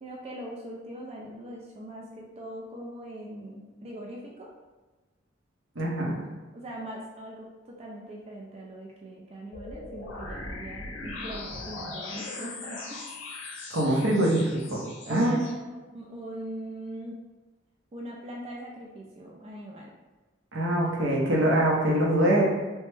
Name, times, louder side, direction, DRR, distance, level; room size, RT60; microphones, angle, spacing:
voice 1, 0.0-4.5 6.5-13.0 15.0-17.2 17.9-19.9, right 1 dB, 30° right, -2 dB, 0.3 m, -41 dB
voice 2, 5.8-6.2 13.7-14.8 15.1-15.4 20.5-22.5, right 1 dB, 80° right, -2 dB, 0.7 m, -24 dB
sound 1, 9.5-15.5, left 2 dB, 75° left, 0.6 m, -39 dB
3.2 x 2.0 x 3.2 m, 1.2 s
head